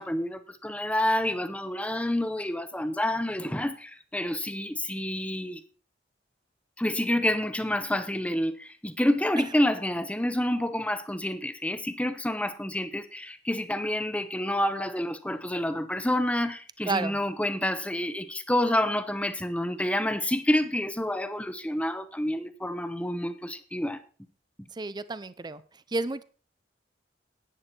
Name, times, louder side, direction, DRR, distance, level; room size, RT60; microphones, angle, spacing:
voice 1, 0.0-5.6 6.8-24.0, left 1 dB, 10° left, 0.9 m, -28 dB
voice 2, 16.9-17.2 24.7-25.6 25.9-26.2, right 3 dB, 25° right, 0.5 m, -31 dB
11.0 x 9.5 x 4.3 m
head